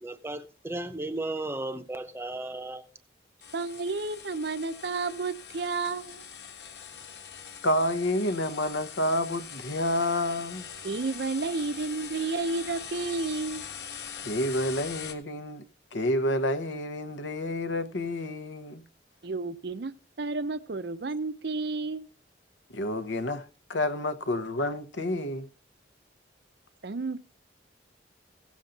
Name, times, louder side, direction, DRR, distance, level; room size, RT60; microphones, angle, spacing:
voice 1, 0.0-2.8, right 2 dB, 15° right, 0.7 m, -35 dB
sound 1, 3.4-15.1, left 7 dB, 60° left, 1.4 m, -42 dB
voice 2, 3.5-6.2 10.8-13.7 19.2-22.1 26.8-27.2, right 3 dB, 60° right, 0.6 m, -31 dB
voice 3, 7.6-10.7 14.2-18.8 22.7-25.5, left 1 dB, 75° left, 1.0 m, -29 dB
16.5 x 7.2 x 3.9 m
head